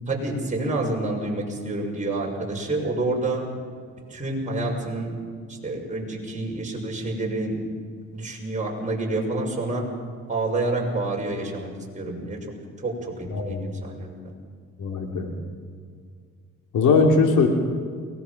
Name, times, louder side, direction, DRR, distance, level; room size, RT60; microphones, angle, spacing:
voice 1, 0.1-3.4 4.1-5.1 5.5-7.6 8.1-9.8 10.3-11.7 11.9-12.4 12.8-14.3, right 2 dB, 25° right, -1 dB, 6.3 m, -28 dB
voice 2, 13.3-13.6 14.8-15.3 16.7-17.5, left 4 dB, 80° left, 2 dB, 3.0 m, -20 dB
23.0 x 19.5 x 6.0 m, 2.1 s
cardioid pair, 90°, 30 cm